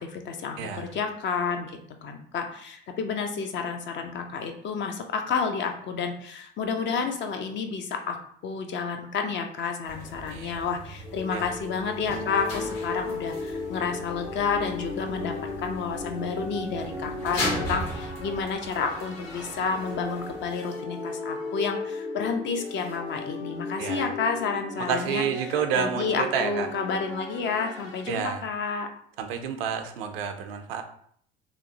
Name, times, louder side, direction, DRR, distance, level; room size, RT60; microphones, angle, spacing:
voice 1, 0.0-8.2 8.4-25.2 25.7-28.9, left 5 dB, 40° left, 5 dB, 0.5 m, -30 dB
voice 2, 0.6-0.9 10.3-10.6 11.3-11.5 23.8-24.1 24.8-26.7 28.1-28.4 29.2-30.8, right 7 dB, 75° right, 7 dB, 0.5 m, -29 dB
sound 1, 9.9-20.5, left 1 dB, 55° left, 1.2 m, -37 dB
sound 2, 11.0-28.3, left 2 dB, 85° left, 0.7 m, -36 dB
2.9 x 2.0 x 2.7 m, 0.63 s
hypercardioid pair, 70°, 29 cm